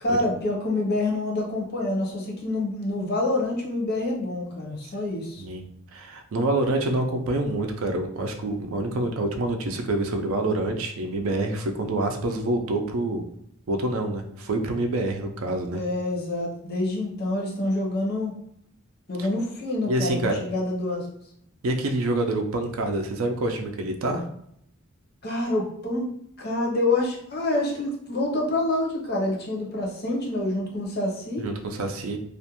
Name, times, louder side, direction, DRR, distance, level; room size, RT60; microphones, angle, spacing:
voice 1, 0.0-5.4 15.7-18.3 19.1-21.1 25.2-26.0 26.4-31.4, left 2 dB, 50° left, -1 dB, 0.7 m, -27 dB
voice 2, 5.4-13.2 13.7-15.8 19.9-20.4 21.6-24.3 31.4-32.2, right 2 dB, 70° right, 4 dB, 0.4 m, -27 dB
2.4 x 2.1 x 2.8 m, 0.71 s
head